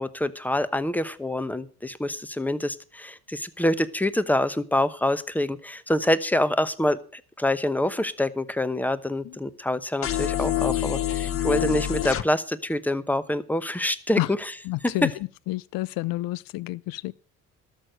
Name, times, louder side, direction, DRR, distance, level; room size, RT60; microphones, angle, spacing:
voice 1, 0.0-14.2, left 1 dB, 5° left, 0.9 m, -26 dB
sound 1, 10.0-12.2, left 12 dB, 40° left, 0.8 m, -26 dB
voice 2, 14.6-15.1 15.5-17.1, left 19 dB, 70° left, 0.6 m, -29 dB
13.0 x 6.8 x 7.7 m
supercardioid pair, 80°, 36 cm